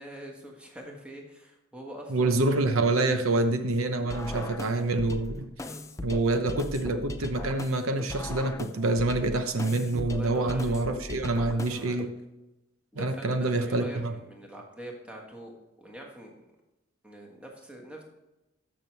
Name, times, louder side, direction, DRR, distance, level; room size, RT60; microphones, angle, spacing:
voice 1, 0.0-2.4 4.0-4.5 5.6-5.8 10.1-10.8 11.4-12.1 12.9-16.4 17.0-18.0, right 1 dB, 5° right, 0 dB, 1.5 m, -44 dB
voice 2, 2.1-5.5 6.0-12.1 12.9-14.1, right 2 dB, 85° right, 8 dB, 0.9 m, -26 dB
sound 1, 4.1-12.1, left 2 dB, 15° left, 0.4 m, -39 dB
13.5 x 6.0 x 3.3 m, 0.97 s
head